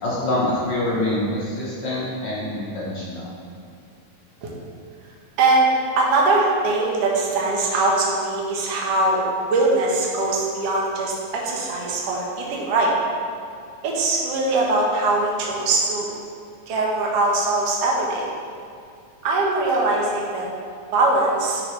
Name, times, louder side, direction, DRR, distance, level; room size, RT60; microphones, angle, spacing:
voice 1, 0.0-3.3, left 1 dB, 75° left, -7 dB, 1.0 m, -25 dB
voice 2, 6.0-9.2 9.5-12.9 13.8-16.1 16.7-18.3 19.2-20.5 20.9-21.6, right 2 dB, 60° right, -2 dB, 1.8 m, -21 dB
9.5 x 6.1 x 3.2 m, 2.4 s
omnidirectional pair, 3.8 m